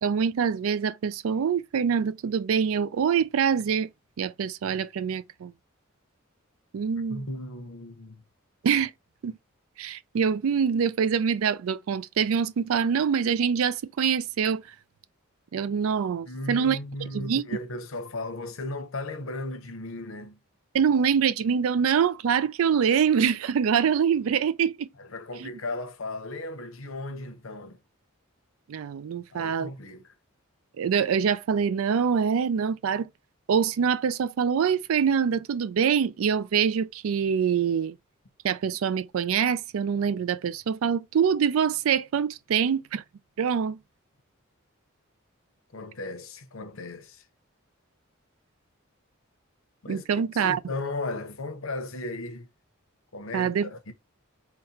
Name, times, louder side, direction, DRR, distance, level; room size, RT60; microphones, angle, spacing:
voice 1, 0.0-3.9 4.2-5.5 6.7-7.3 8.6-8.9 9.2-9.4 9.8-14.6 15.5-16.8 17.1-17.4 20.7-24.9 25.4-25.5 28.7-29.7 30.8-33.1 33.5-38.0 38.4-43.0 43.4-43.8 49.9-50.6 53.3-53.7, right 7 dB, 80° right, 0.4 m, -25 dB
voice 2, 7.1-8.2 16.3-20.4 25.0-27.8 29.3-30.1 45.7-47.2 49.8-52.5 53.1-53.9, left 2 dB, 75° left, 0.8 m, -36 dB
4.0 x 2.1 x 4.2 m
head